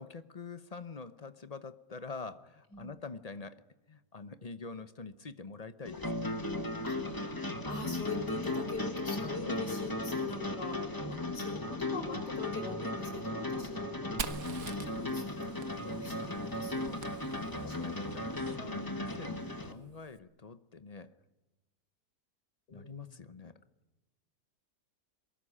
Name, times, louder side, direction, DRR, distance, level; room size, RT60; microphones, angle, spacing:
voice 1, 0.0-6.3 9.2-9.5 9.8-9.9 17.3-21.1 22.7-23.6, left 4 dB, 35° left, 12 dB, 0.6 m, -45 dB
sound 1, 5.8-19.7, left 2 dB, 15° left, 1.5 m, -36 dB
voice 2, 6.8-14.2 14.7-17.0 17.7-18.5 22.7-23.3, left 3 dB, 75° left, 4 dB, 6.0 m, -43 dB
Fire, 14.2-17.9, right 6 dB, 55° right, 1.5 m, -44 dB
22.5 x 20.0 x 9.9 m, 1.1 s
omnidirectional pair, 1.8 m